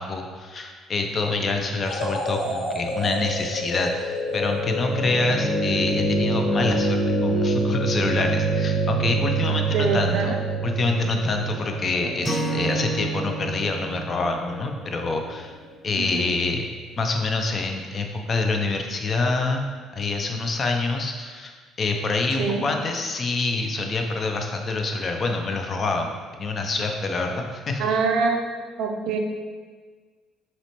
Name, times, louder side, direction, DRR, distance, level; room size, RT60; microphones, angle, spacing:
voice 1, 0.0-10.3 10.6-15.5 15.8-16.7 17.0-27.8, left 3 dB, 35° left, 4 dB, 0.4 m, -26 dB
sound 1, 1.8-5.0, equal, 75° left, 0.9 m, -30 dB
sound 2, 3.1-15.2, right 2 dB, 15° left, 0.8 m, -26 dB
voice 2, 9.7-10.4 12.0-12.3 16.0-16.4 22.3-22.6 27.8-28.5 28.8-29.2, right 4 dB, 70° right, 2 dB, 0.4 m, -25 dB
Acoustic guitar / Strum, 12.2-15.6, right 3 dB, 15° right, 0.5 m, -30 dB
5.5 x 2.2 x 2.9 m, 1.5 s
cardioid pair, 125°, 0 cm